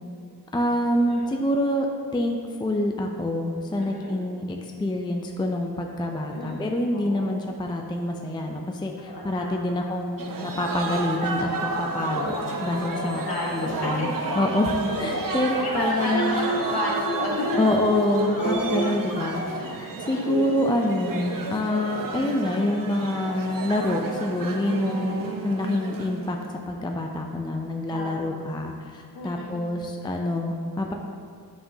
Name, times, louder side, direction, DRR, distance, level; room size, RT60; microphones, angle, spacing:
voice 1, 0.5-1.9 2.1-12.3 12.6-13.2 13.5-14.1 14.4-16.4 17.6-26.4 26.7-30.9, left 1 dB, 15° left, 2 dB, 0.4 m, -26 dB
voice 2, 3.8-4.2 6.1-6.6 6.9-7.3 9.0-9.9 11.7-12.1 13.0-14.5 15.2-15.4 15.6-17.5 18.3-18.9 19.2-19.5 19.8-20.5 27.9-28.4 29.1-29.7, left 1 dB, 75° left, -4 dB, 1.6 m, -34 dB
sound 1, 10.2-26.5, right 3 dB, 60° right, 0.7 m, -31 dB
sound 2, 10.7-13.9 14.3-14.5 14.8-19.6, left 3 dB, 40° left, 0.7 m, -34 dB
7.4 x 5.7 x 2.7 m, 2.3 s
wide cardioid pair, 75°, 38 cm